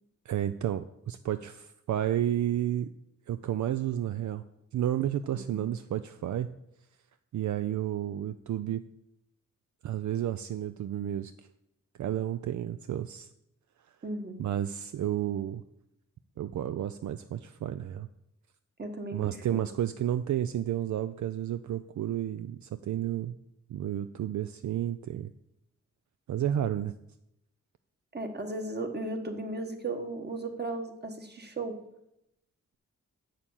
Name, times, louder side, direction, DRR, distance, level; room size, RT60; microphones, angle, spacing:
voice 1, 0.3-2.9 3.3-4.4 4.7-6.5 7.3-8.8 9.8-11.3 12.0-13.3 14.4-15.6 16.4-18.1 19.1-23.4 23.7-25.3 26.3-26.9, right 11 dB, 70° right, 11 dB, 0.5 m, -31 dB
voice 2, 5.3-5.8 14.0-14.4 18.8-19.6 28.1-31.8, right 2 dB, 35° right, 5 dB, 1.5 m, -36 dB
7.6 x 6.4 x 7.2 m, 0.82 s
cardioid pair, 85°, 30 cm